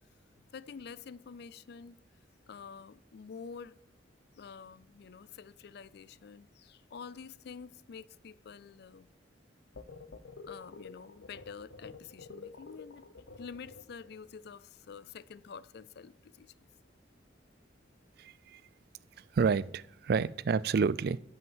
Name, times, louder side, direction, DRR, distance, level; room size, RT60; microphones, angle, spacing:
voice 1, 0.5-2.0 2.5-3.8 4.4-9.1 10.5-16.5, left 6 dB, 60° left, 0.4 m, -48 dB
sound 1, 9.8-14.2, left 4 dB, 75° left, 0.8 m, -49 dB
voice 2, 18.2-18.6 19.3-21.2, right 5 dB, 55° right, 0.3 m, -29 dB
11.0 x 5.5 x 7.3 m
head